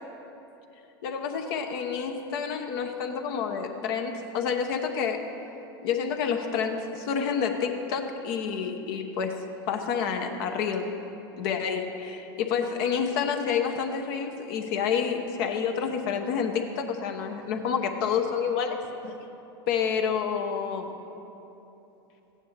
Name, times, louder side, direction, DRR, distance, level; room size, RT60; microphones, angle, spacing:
voice 1, 1.0-5.2 5.8-10.9 11.4-19.2 19.7-21.0, left 6 dB, 65° left, 5 dB, 1.1 m, -29 dB
14.5 x 9.7 x 3.4 m, 3.0 s
hypercardioid pair, 100°, 13 cm